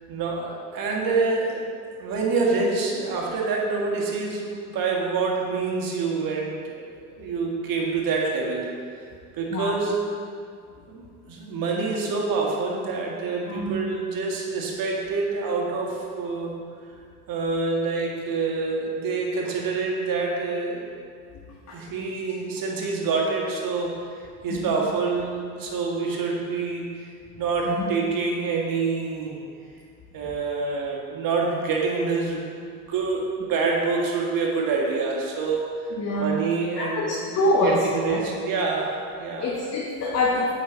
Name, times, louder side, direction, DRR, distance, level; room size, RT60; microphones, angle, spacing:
voice 1, 0.1-1.6 1.9-6.8 7.1-8.7 9.0-9.1 9.3-10.1 10.9-16.5 17.3-20.9 21.7-27.1 27.4-29.4 30.1-37.3 37.6-39.5, right 4 dB, 60° right, -2 dB, 1.8 m, -27 dB
voice 2, 36.0-36.3 36.8-38.3 39.4-40.5, left 1 dB, 40° left, -2 dB, 1.1 m, -25 dB
7.8 x 5.7 x 3.9 m, 2.2 s
supercardioid pair, 80°, 39 cm